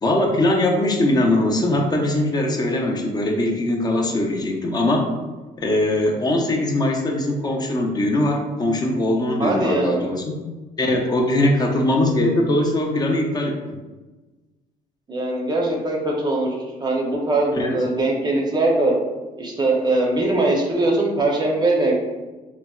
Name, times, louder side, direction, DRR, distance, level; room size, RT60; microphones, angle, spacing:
voice 1, 0.0-5.1 5.6-10.2 10.8-13.8 17.5-17.8, left 1 dB, 25° left, 1 dB, 0.5 m, -21 dB
voice 2, 9.4-10.0 15.1-18.9 19.4-21.9, right 2 dB, 25° right, -1 dB, 0.6 m, -21 dB
4.0 x 2.0 x 2.3 m, 1.2 s
cardioid pair, 110°, 17 cm